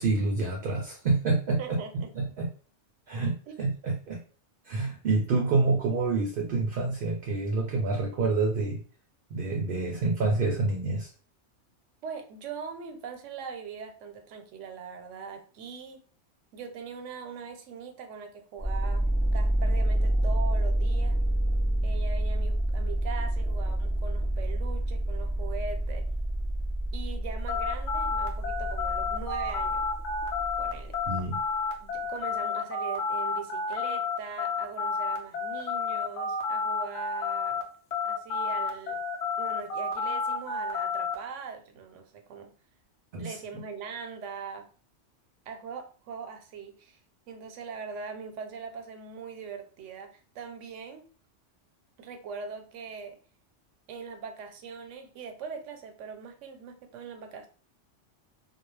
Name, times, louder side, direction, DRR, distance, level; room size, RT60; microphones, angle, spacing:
voice 1, 0.0-2.5 3.1-4.2 4.7-8.8 9.3-11.1 31.1-31.4 43.1-43.4, right 3 dB, 60° right, 1 dB, 0.6 m, -27 dB
voice 2, 1.6-2.1 3.5-3.6 12.0-16.0 16.5-19.0 19.3-21.2 21.8-26.1 26.9-29.8 30.6-31.0 31.8-37.6 38.0-39.0 39.4-42.5 43.2-44.6 45.5-47.0 47.3-51.0 52.0-53.2 53.9-57.5, right 5 dB, 85° right, 6 dB, 0.9 m, -41 dB
sound 1, 18.6-31.2, right 1 dB, 15° left, 0.3 m, -28 dB
sound 2, 27.5-37.6 37.9-41.2, left 5 dB, 70° left, 0.9 m, -30 dB
2.3 x 2.0 x 3.1 m, 0.40 s
omnidirectional pair, 1.2 m